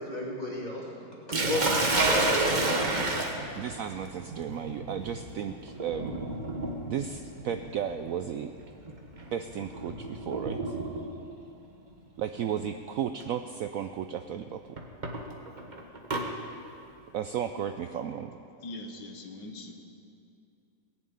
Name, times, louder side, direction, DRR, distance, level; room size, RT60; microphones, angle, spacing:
voice 1, 0.0-1.6 2.0-2.8, equal, 20° left, -4 dB, 2.9 m, -32 dB
Sink (filling or washing), 1.3-11.3 12.4-12.7 13.2-13.3 14.8-16.3, right 2 dB, 30° right, 1.3 m, -31 dB
voice 2, 1.5-2.2 2.6-3.1 3.6-6.2 6.8-8.5 9.3-10.8 12.2-14.8 17.1-18.4, right 9 dB, 70° right, 8 dB, 0.8 m, -34 dB
voice 3, 18.6-19.7, left 2 dB, 90° left, 3 dB, 2.0 m, -41 dB
18.5 x 7.4 x 8.8 m, 2.5 s
omnidirectional pair, 1.9 m